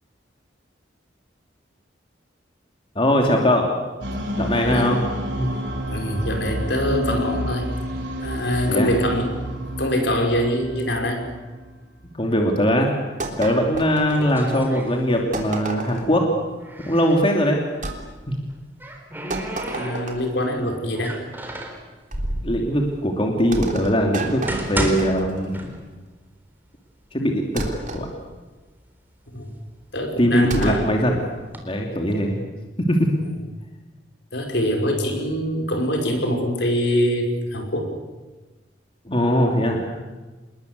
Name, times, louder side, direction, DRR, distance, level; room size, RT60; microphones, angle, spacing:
voice 1, 2.9-3.7 4.4-5.0 5.4-5.5 8.7-8.9 12.2-12.9 13.4-16.3 16.9-17.6 18.3-18.4 22.4-24.4 24.7-25.7 27.1-28.1 30.2-31.2 31.6-32.4 32.9-33.1 39.1-39.9, equal, 30° left, 1 dB, 2.8 m, -21 dB
sound 1, 4.0-12.1, equal, 80° right, 5.5 m, -30 dB
voice 2, 4.6-4.9 5.9-7.7 8.2-9.4 9.8-11.2 19.6-21.2 29.3-29.5 29.9-30.9 34.3-37.9, equal, 70° left, 3 dB, 5.4 m, -24 dB
sound 2, 13.2-14.6 15.3-16.2 17.8-18.0 19.3-20.4 22.1-22.5 23.5-25.6 27.6-28.1 30.5-30.9, right 2 dB, 45° right, 3.4 m, -31 dB
sound 3, 13.6-15.5 15.8-17.2 18.3-20.4 20.9-21.9 22.6-22.7 23.4-23.5 24.1-26.1 26.4-26.5 27.3-27.4 27.7-28.4 28.9-30.6 31.2-31.6, right 1 dB, 10° right, 3.9 m, -32 dB
27.5 x 21.0 x 8.2 m, 1.2 s
head